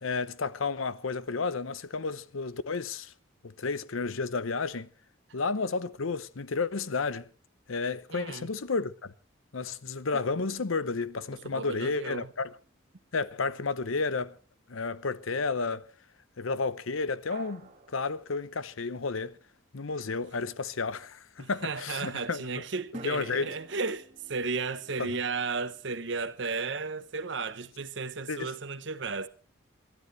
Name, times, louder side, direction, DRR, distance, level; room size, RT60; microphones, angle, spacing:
voice 1, 0.0-3.1 3.4-4.9 5.3-7.3 7.7-9.1 9.5-12.5 13.1-14.4 14.7-15.9 16.4-19.4 19.7-22.4 23.0-23.5 25.0-25.2 28.3-28.5, left 4 dB, 85° left, 0.8 m, -32 dB
voice 2, 8.1-8.5 11.4-12.3 21.4-29.3, right 4 dB, 65° right, 1.0 m, -34 dB
sound 1, 10.1-13.5 17.3-19.3 22.9-26.0, right 2 dB, 35° right, 2.2 m, -52 dB
27.5 x 12.5 x 3.3 m
head